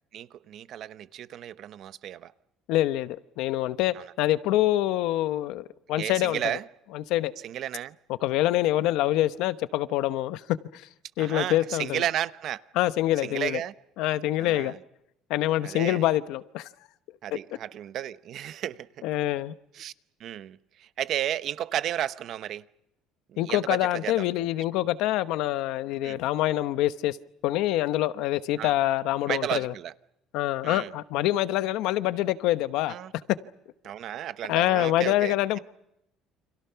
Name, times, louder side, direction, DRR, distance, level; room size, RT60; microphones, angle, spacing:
voice 1, 0.1-2.3 4.0-4.1 5.9-6.6 7.4-8.0 11.2-12.6 13.2-13.7 14.4-14.8 15.6-16.1 17.2-18.9 19.7-19.9 20.2-22.6 23.3-24.5 26.0-26.2 28.6-28.7 29.3-29.9 30.6-30.9 32.9-33.1 33.8-35.6, right 11 dB, 45° right, 0.9 m, -33 dB
voice 2, 2.7-6.6 6.9-7.3 8.1-10.4 10.7-10.9 11.2-12.0 12.7-13.6 14.0-14.7 15.3-16.7 17.3-17.4 19.0-19.5 23.4-27.2 27.4-29.7 30.3-32.9 34.5-35.6, left 15 dB, 70° left, 1.0 m, -26 dB
29.5 x 27.0 x 5.8 m
cardioid pair, 165°, 0 cm